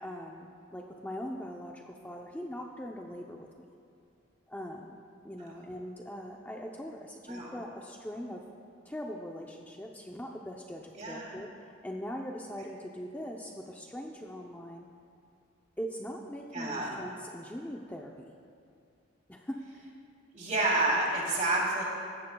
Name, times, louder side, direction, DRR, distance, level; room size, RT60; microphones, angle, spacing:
voice 1, 0.0-3.7 4.5-5.0 5.2-8.4 8.9-11.5 11.8-14.9 15.8-18.4 19.3-19.9, equal, 10° left, 0 dB, 0.6 m, -41 dB
voice 2, 11.0-11.4 16.5-17.0 20.3-21.8, right 2 dB, 40° right, -3 dB, 3.0 m, -29 dB
18.5 x 14.5 x 2.3 m, 2.4 s
head